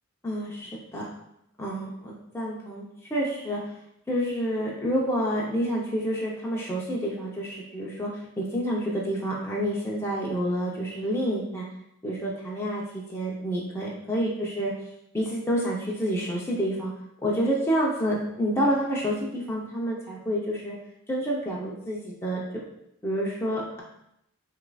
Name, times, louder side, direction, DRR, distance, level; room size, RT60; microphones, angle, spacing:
voice 1, 0.2-1.1 1.6-2.8 3.1-3.6 4.1-8.1 8.4-11.7 12.0-14.7 15.1-16.9 17.2-20.7 21.1-22.4 23.0-23.8, equal, 10° left, -4 dB, 0.6 m, -28 dB
6.4 x 2.5 x 2.3 m, 0.78 s
head